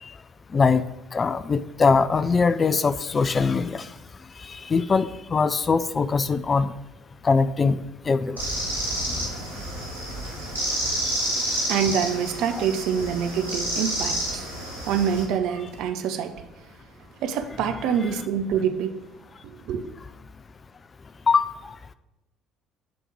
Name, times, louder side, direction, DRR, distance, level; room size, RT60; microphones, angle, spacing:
voice 1, 0.5-0.8 1.1-3.9 4.4-6.7 7.2-7.8 8.1-8.4 21.3-21.7, left 4 dB, 30° left, 0.4 m, -22 dB
sound 1, 8.4-15.2, right 1 dB, 90° left, 1.7 m, -29 dB
voice 2, 11.5-16.4 17.2-19.1 19.4-19.9, right 7 dB, 60° right, 0.6 m, -26 dB
8.5 x 3.5 x 6.1 m
figure-of-eight pair, 55°, 0 cm